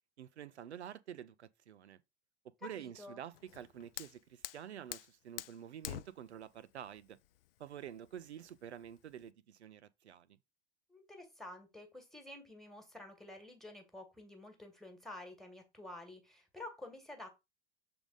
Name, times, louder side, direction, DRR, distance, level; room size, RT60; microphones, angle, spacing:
voice 1, 0.2-2.0 2.6-7.2 7.6-10.4, right 9 dB, 75° right, 0.7 m, -49 dB
voice 2, 2.7-3.2 10.9-17.3, left 1 dB, ahead, 1.6 m, -50 dB
Fire, 3.3-9.3, left 14 dB, 60° left, 0.4 m, -49 dB
6.9 x 3.7 x 3.9 m
figure-of-eight pair, 90°, 34 cm